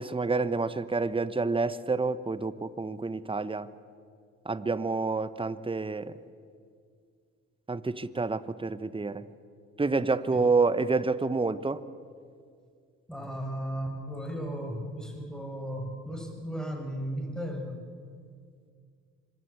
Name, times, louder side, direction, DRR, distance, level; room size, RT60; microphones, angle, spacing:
voice 1, 0.0-3.7 4.4-6.1 7.7-9.3 9.8-11.8, right 3 dB, 15° right, 14 dB, 1.2 m, -28 dB
voice 2, 13.1-17.8, equal, ahead, 3 dB, 7.0 m, -35 dB
25.0 x 22.5 x 8.4 m, 2.2 s
hypercardioid pair, 50°, 38 cm